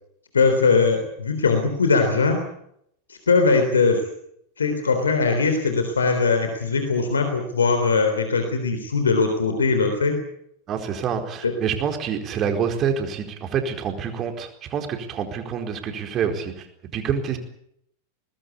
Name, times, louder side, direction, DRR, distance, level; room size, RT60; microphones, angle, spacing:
voice 1, 0.3-2.4 3.1-4.0 4.6-10.2 11.4-11.5, left 4 dB, 70° left, 6 dB, 3.5 m, -20 dB
voice 2, 10.7-16.7 16.9-17.4, right 7 dB, 30° right, 5 dB, 4.4 m, -27 dB
23.5 x 19.5 x 8.4 m, 0.73 s
figure-of-eight pair, 90°, 0 cm